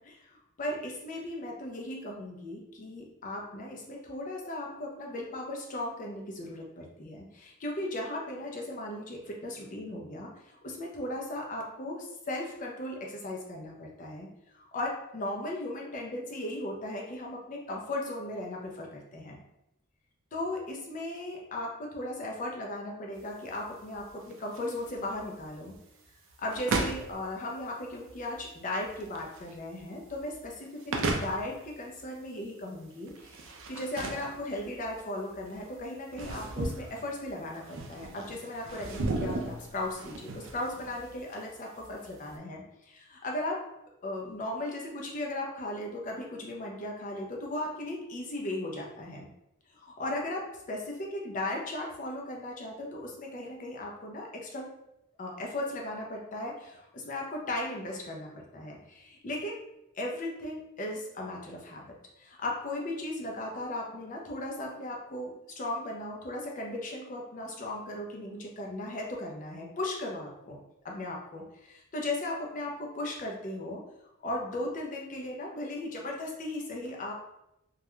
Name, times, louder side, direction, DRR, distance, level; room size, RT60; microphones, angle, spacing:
voice 1, 0.0-14.3 14.5-19.4 20.3-25.7 26.4-43.6 44.0-49.2 49.7-54.7 55.2-59.6 59.9-70.6 70.8-73.8 74.2-77.4, left 1 dB, 35° left, 0 dB, 0.4 m, -37 dB
sound 1, 23.2-42.3, right 2 dB, 60° right, 0.4 m, -38 dB
2.3 x 2.1 x 2.9 m, 0.85 s
head